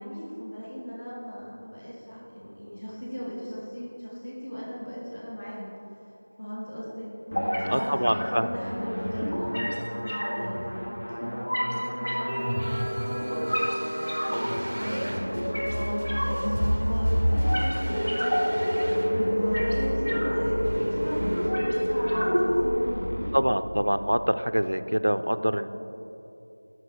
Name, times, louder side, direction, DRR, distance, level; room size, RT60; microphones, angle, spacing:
voice 1, 0.0-5.7 6.0-7.1 7.5-11.2 11.5-13.8 14.3-18.6 19.1-23.1, equal, 25° left, -6 dB, 1.1 m, -36 dB
sound 1, 7.3-23.3, equal, 70° left, 2.0 m, -29 dB
voice 2, 7.7-8.5 23.3-25.7, equal, 70° right, 11 dB, 0.4 m, -25 dB
sound 2, 12.3-21.5, equal, 25° right, 0.6 m, -37 dB
sound 3, 17.8-22.8, equal, 10° left, 1.5 m, -28 dB
9.7 x 6.0 x 4.5 m, 2.9 s
figure-of-eight pair, 175°, 0 cm